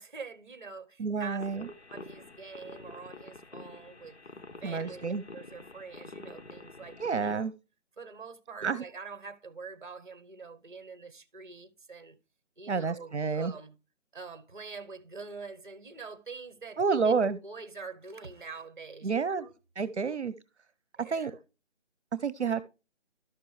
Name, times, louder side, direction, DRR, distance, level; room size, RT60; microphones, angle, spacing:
voice 1, 0.0-4.1 4.6-7.0 8.0-12.2 12.6-13.8 14.1-17.1 17.4-19.5 21.0-21.4, right 4 dB, 45° right, 1.0 m, -45 dB
voice 2, 1.0-1.7 4.6-5.2 7.0-7.5 8.6-8.8 12.7-13.5 16.8-17.4 19.0-19.5 19.8-20.3 21.1-21.3 22.2-22.6, right 5 dB, 70° right, 0.8 m, -29 dB
sound 1, 1.4-7.3, left 3 dB, 65° left, 1.1 m, -48 dB
12.5 x 6.0 x 3.2 m
figure-of-eight pair, 180°, 36 cm